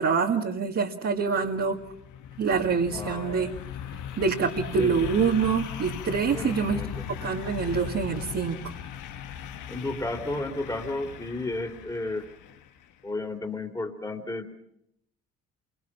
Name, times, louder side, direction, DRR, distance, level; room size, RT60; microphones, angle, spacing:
voice 1, 0.0-1.8 2.4-3.5 4.2-6.8 7.2-8.6, right 5 dB, 55° right, -1 dB, 2.2 m, -25 dB
sound 1, 1.2-12.9, left 9 dB, 85° left, 1.3 m, -38 dB
voice 2, 2.9-3.4 4.8-4.9 6.3-7.0 9.7-12.3 13.0-14.5, left 2 dB, 10° left, 2 dB, 2.8 m, -33 dB
28.0 x 24.0 x 6.0 m, 0.78 s
cardioid pair, 90°, 30 cm